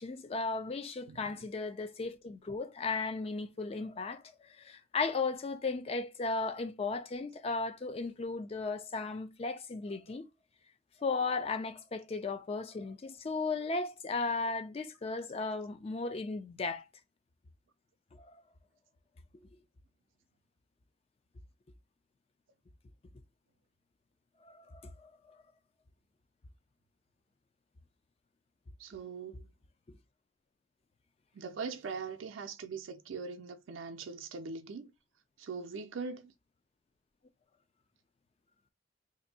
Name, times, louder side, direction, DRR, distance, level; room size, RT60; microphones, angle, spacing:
voice 1, 0.0-10.3 11.0-16.8 18.2-18.4 24.4-25.4 29.9-30.0, left 3 dB, 30° left, 0.4 m, -36 dB
voice 2, 1.1-1.5 28.8-29.5 31.3-34.9 35.4-36.3, right 5 dB, 85° right, 0.4 m, -41 dB
2.6 x 2.6 x 3.9 m
head